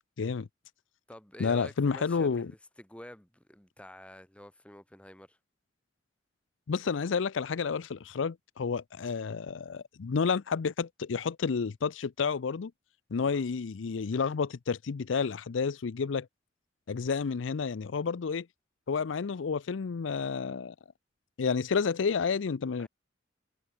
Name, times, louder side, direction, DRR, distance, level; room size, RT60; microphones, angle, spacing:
voice 1, 0.2-0.5 1.4-2.5 6.7-12.7 13.1-16.3 16.9-18.5 18.9-20.7 21.4-22.9, left 5 dB, 90° left, 0.5 m, -30 dB
voice 2, 1.1-5.4 13.2-13.4 22.8-22.9, left 1 dB, 5° left, 1.3 m, -49 dB
head